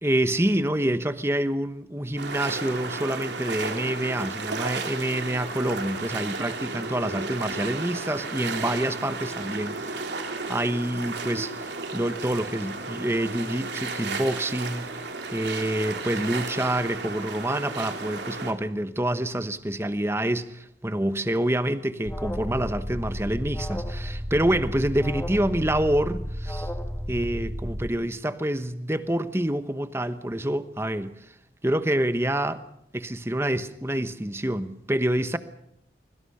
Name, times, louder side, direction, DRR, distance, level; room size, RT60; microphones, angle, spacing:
voice 1, 0.0-10.2 10.5-14.9 15.3-26.7 27.1-31.2 31.6-32.6 32.9-35.4, right 1 dB, 15° right, 1.1 m, -27 dB
sound 1, 2.2-18.5, right 3 dB, 85° right, 3.4 m, -33 dB
Alarm, 22.0-27.9, equal, 10° left, 1.8 m, -32 dB
25.0 x 23.5 x 5.7 m
head